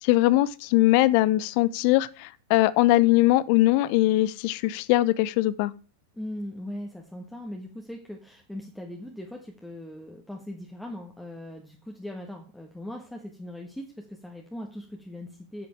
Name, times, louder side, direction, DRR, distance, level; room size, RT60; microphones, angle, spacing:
voice 1, 0.0-5.7, left 17 dB, 45° left, 0.5 m, -21 dB
voice 2, 6.1-15.7, left 1 dB, 5° left, 1.5 m, -39 dB
8.7 x 7.7 x 4.6 m
figure-of-eight pair, 90°, 0 cm